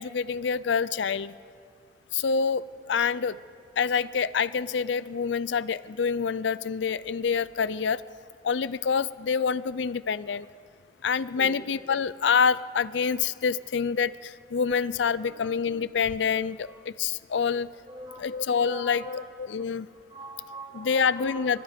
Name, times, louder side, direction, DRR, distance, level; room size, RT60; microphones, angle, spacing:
voice 1, 0.0-1.4 2.1-3.4 3.8-8.0 8.4-10.5 11.0-17.7 18.2-19.9 20.7-21.6, left 6 dB, 80° left, 18 dB, 0.5 m, -27 dB
voice 2, 17.8-18.2 18.6-19.2 20.1-21.5, right 1 dB, 25° right, -3 dB, 4.8 m, -42 dB
24.5 x 22.5 x 5.1 m, 2.4 s
head